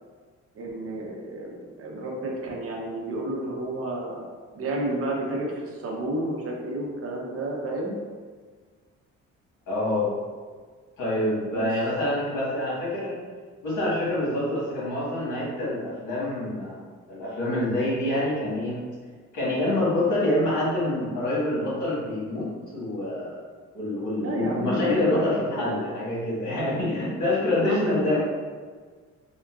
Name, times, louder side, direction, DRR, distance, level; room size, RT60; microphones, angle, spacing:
voice 1, 0.5-7.9 11.4-11.7 24.2-25.3 25.5-25.8 27.4-28.2, right 1 dB, 50° right, -1 dB, 0.7 m, -31 dB
voice 2, 9.7-10.1 11.0-13.1 13.6-18.8 19.3-23.4 23.7-28.2, left 1 dB, 85° left, -7 dB, 1.4 m, -26 dB
3.7 x 2.2 x 2.3 m, 1.5 s
cardioid pair, 90°, 30 cm